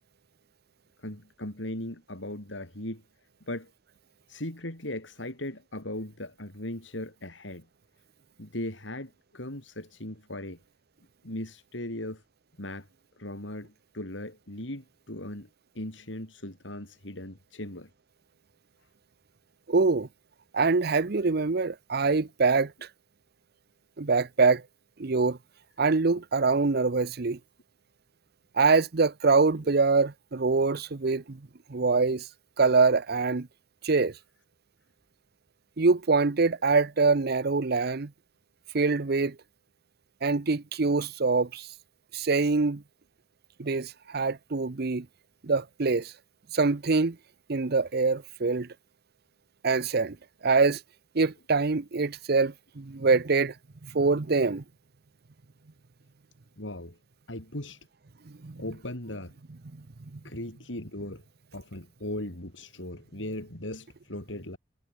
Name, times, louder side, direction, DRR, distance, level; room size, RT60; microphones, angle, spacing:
voice 1, 1.0-3.0 3.5-3.7 4.3-7.6 8.4-10.6 11.2-12.2 12.6-12.9 13.2-15.5 15.7-17.9 56.6-57.0 57.3-57.8 58.6-59.3 60.2-61.2 61.5-64.6, left 1 dB, 75° left, 4.9 m, -38 dB
voice 2, 19.7-20.1 20.5-22.7 24.0-24.6 25.0-25.4 25.8-27.4 28.6-31.4 31.7-32.2 32.6-33.5 33.8-34.1 35.8-38.1 38.7-39.3 40.2-41.7 42.1-42.8 43.6-45.1 45.4-46.1 46.5-47.2 47.5-48.7 49.6-50.2 50.4-50.8 51.1-53.5 53.9-54.6 58.4-58.6, right 4 dB, 55° right, 0.8 m, -24 dB
head